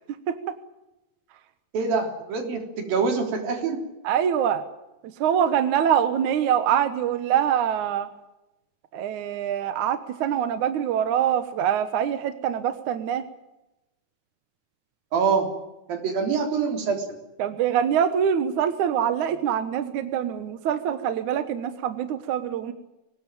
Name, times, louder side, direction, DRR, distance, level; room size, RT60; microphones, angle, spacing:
voice 1, 1.7-3.8 15.1-15.5 15.9-17.1, right 5 dB, 80° right, 4 dB, 5.4 m, -25 dB
voice 2, 4.0-4.6 5.0-8.1 8.9-13.3 17.4-22.7, right 9 dB, 65° right, 10 dB, 2.5 m, -24 dB
24.0 x 19.5 x 9.1 m, 0.98 s
omnidirectional pair, 4.0 m